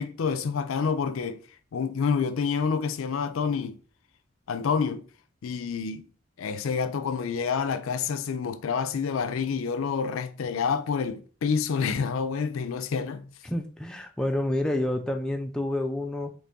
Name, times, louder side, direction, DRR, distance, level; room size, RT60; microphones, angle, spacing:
voice 1, 0.0-1.4 1.7-3.8 4.5-5.0 5.4-6.0 6.4-13.3, left 6 dB, 80° left, 0.4 m, -28 dB
voice 2, 13.4-16.3, left 1 dB, 5° left, 0.3 m, -29 dB
3.5 x 3.1 x 3.9 m
head